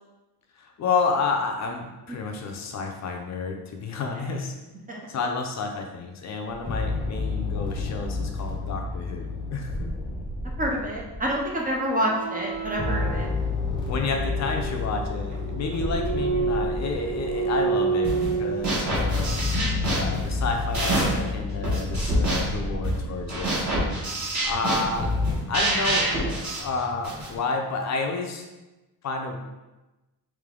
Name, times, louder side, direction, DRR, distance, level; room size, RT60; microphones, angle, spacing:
voice 1, 0.6-4.5 5.1-9.9 13.9-23.5 24.4-25.1 25.5-28.5 29.0-29.4, left 4 dB, 45° left, 3 dB, 0.5 m, -30 dB
sound 1, 6.5-11.7 12.5-17.9 18.6-24.0 24.7-25.4, left 3 dB, 10° left, 0.8 m, -30 dB
voice 2, 10.6-13.3, equal, 20° right, -1 dB, 0.4 m, -27 dB
sound 2, 11.9-18.9, right 4 dB, 65° right, 1.0 m, -29 dB
sound 3, 18.0-18.3 18.6-21.3 21.6-27.3, right 1 dB, 45° right, 1.4 m, -27 dB
3.4 x 3.1 x 3.6 m, 1.1 s
cardioid pair, 165°, 41 cm